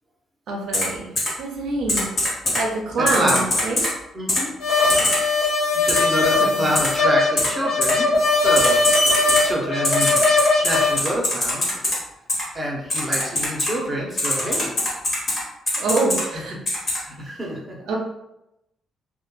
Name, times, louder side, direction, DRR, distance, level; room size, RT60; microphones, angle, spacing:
voice 1, 0.5-1.1 1.4-2.0 2.5-3.8 4.8-4.9 6.5-6.6 15.8-16.6 17.9-18.0, right 3 dB, 70° right, 0 dB, 0.5 m, -25 dB
Typing, 0.7-0.8 1.2-1.3 1.9-2.6 3.1-3.9 4.3-4.4 4.9-5.2 5.9-6.0 6.8-6.9 7.4-7.5 7.8-7.9 8.6-9.4 9.8-11.9 12.3-12.4 12.9-13.7 14.2-15.4 15.7-16.2 16.7-17.0, left 1 dB, 40° left, 1.0 m, -22 dB
voice 2, 3.0-3.5 4.1-4.5 5.9-8.1 8.4-8.8 9.4-10.2 10.6-11.8 12.5-14.7 16.2-16.6 17.0-17.8, equal, 10° right, -3 dB, 0.6 m, -27 dB
sound 1, 4.6-11.0, left 3 dB, 80° left, 1.1 m, -20 dB
2.2 x 2.1 x 3.0 m, 0.87 s
cardioid pair, 130°, 0 cm